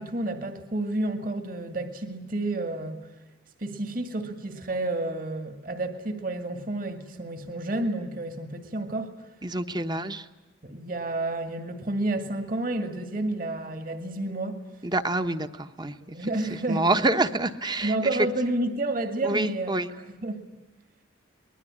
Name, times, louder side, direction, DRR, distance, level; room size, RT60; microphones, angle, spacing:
voice 1, 0.0-3.0 3.6-9.1 9.8-9.9 10.6-14.6 16.0-16.9 17.8-20.4, right 2 dB, 45° right, 8 dB, 2.2 m, -30 dB
voice 2, 9.4-10.3 14.8-16.2 16.7-18.0 19.2-19.9, right 2 dB, 20° right, 9 dB, 1.1 m, -27 dB
24.0 x 21.0 x 9.8 m, 1.1 s
head